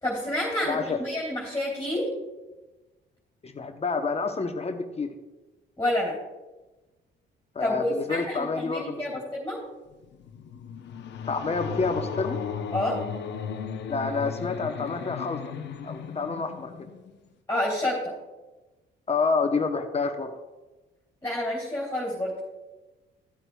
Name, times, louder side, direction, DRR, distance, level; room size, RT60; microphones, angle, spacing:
voice 1, 0.0-2.1 5.8-6.2 7.6-9.6 12.7-13.0 17.5-18.1 21.2-22.4, left 1 dB, 15° left, -5 dB, 3.0 m, -28 dB
voice 2, 0.7-1.0 3.4-5.1 7.5-9.2 11.3-12.4 13.9-15.5 15.8-16.7 19.1-20.3, left 4 dB, 30° left, 6 dB, 0.9 m, -28 dB
sound 1, 9.9-17.3, left 7 dB, 65° left, 0.8 m, -36 dB
14.0 x 7.8 x 2.3 m, 1.1 s
cardioid pair, 90°, 20 cm